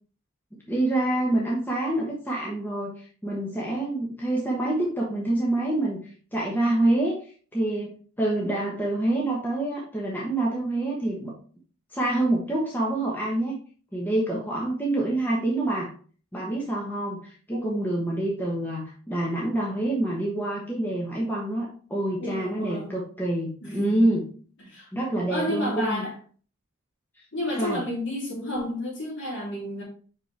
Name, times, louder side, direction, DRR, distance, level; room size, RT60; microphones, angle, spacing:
voice 1, 0.7-7.1 7.5-11.3 11.9-13.5 13.9-15.9 16.3-24.3 24.9-26.0 27.6-27.8, right 1 dB, 10° left, -4 dB, 1.1 m, -27 dB
voice 2, 17.5-17.8 22.2-22.9 23.6-24.1 24.6-24.9 25.3-26.1 27.3-29.8, left 1 dB, 55° left, -4 dB, 3.0 m, -31 dB
5.4 x 5.2 x 3.3 m, 0.42 s
head